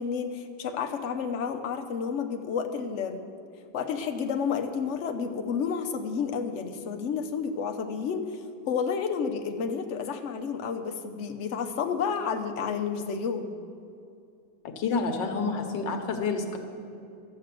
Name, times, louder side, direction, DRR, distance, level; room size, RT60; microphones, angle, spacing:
voice 1, 0.0-3.2 3.7-8.4 8.7-13.5, left 6 dB, 55° left, 6 dB, 0.9 m, -30 dB
voice 2, 14.8-16.6, left 4 dB, 85° left, 5 dB, 1.8 m, -28 dB
13.0 x 7.6 x 7.5 m, 2.5 s
omnidirectional pair, 1.9 m